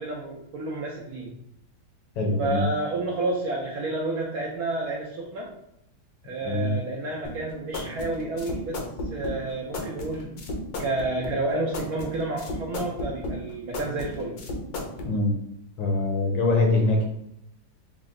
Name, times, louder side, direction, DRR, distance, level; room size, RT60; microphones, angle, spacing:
voice 1, 0.0-1.4 2.4-5.6 6.2-10.4 10.8-14.4, right 2 dB, 70° right, -3 dB, 0.9 m, -30 dB
voice 2, 2.2-2.7 6.4-6.7 15.0-15.3 15.8-17.0, left 2 dB, 80° left, 0 dB, 1.7 m, -23 dB
sound 1, 7.2-15.1, left 2 dB, 65° left, 1.0 m, -34 dB
4.9 x 2.2 x 3.6 m, 0.78 s
omnidirectional pair, 2.2 m